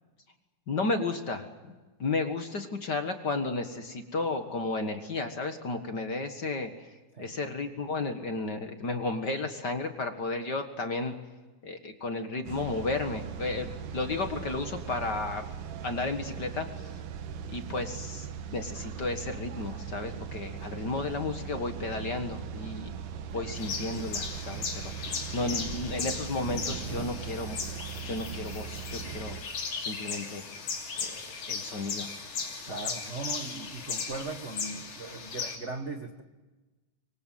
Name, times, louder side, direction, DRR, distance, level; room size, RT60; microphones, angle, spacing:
voice 1, 0.7-1.5 2.0-6.9 7.2-11.1 11.6-15.4 15.8-16.9 17.5-18.3 18.5-22.9 23.3-27.6 28.0-29.4 29.8-30.4 31.0-31.2 31.5-32.1 32.6-32.9, left 3 dB, 40° left, 6 dB, 1.7 m, -33 dB
sound 1, 12.5-29.4, right 7 dB, 85° right, 3.0 m, -39 dB
sound 2, 23.6-35.6, left 5 dB, 70° left, 4.5 m, -37 dB
voice 2, 32.7-36.2, right 3 dB, 65° right, 6 dB, 0.7 m, -39 dB
24.5 x 24.0 x 7.6 m, 1.2 s
omnidirectional pair, 3.6 m